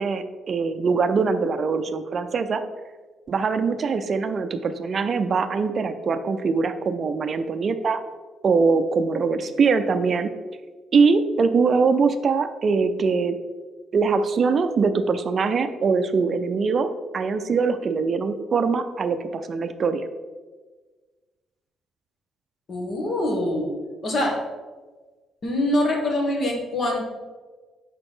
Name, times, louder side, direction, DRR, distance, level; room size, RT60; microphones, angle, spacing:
voice 1, 0.0-2.6 3.3-8.0 8.4-10.3 10.9-13.3 13.9-20.0, right 4 dB, 50° right, 9 dB, 0.4 m, -22 dB
voice 2, 22.7-23.7 24.0-24.4 25.4-27.0, left 1 dB, 55° left, 0 dB, 1.5 m, -24 dB
4.7 x 4.2 x 4.9 m, 1.4 s
cardioid pair, 90°, 0 cm